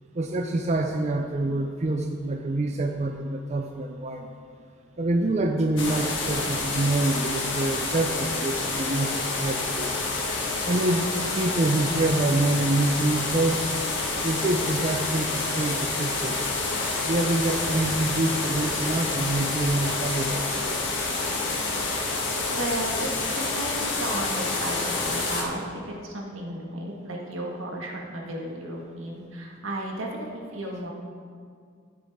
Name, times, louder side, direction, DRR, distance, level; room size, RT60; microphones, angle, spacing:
voice 1, 0.1-4.3 5.0-9.9 10.6-11.1 11.3-13.6 14.2-16.3 17.0-20.8, right 2 dB, 35° right, 4 dB, 0.5 m, -26 dB
sound 1, 5.8-25.4, left 3 dB, 65° left, 1.5 m, -28 dB
voice 2, 22.5-23.1 23.3-30.9, right 1 dB, 85° right, -1 dB, 1.8 m, -34 dB
14.0 x 7.9 x 3.6 m, 2.1 s
head